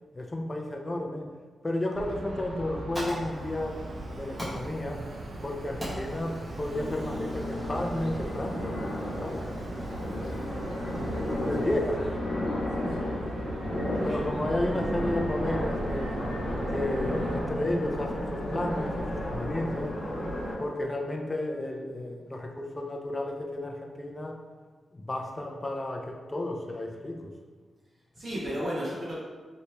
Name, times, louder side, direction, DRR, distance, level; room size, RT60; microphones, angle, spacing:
voice 1, 0.1-1.3 1.6-3.9 4.1-5.1 5.4-9.5 10.1-10.2 11.3-12.2 14.0-16.2 16.7-20.0 20.6-24.4 24.9-27.3, left 1 dB, 20° left, 2 dB, 0.3 m, -32 dB
sound 1, 1.9-17.4, right 1 dB, 75° right, 0.4 m, -38 dB
Fire, 2.5-11.9, equal, 5° right, 1.1 m, -44 dB
sound 2, 6.7-20.5, left 1 dB, 45° left, 1.0 m, -33 dB
voice 2, 12.8-13.2 13.9-14.4 28.2-29.2, equal, 50° right, -7 dB, 1.0 m, -35 dB
3.0 x 2.9 x 3.2 m, 1.4 s
wide cardioid pair, 160°, 0 cm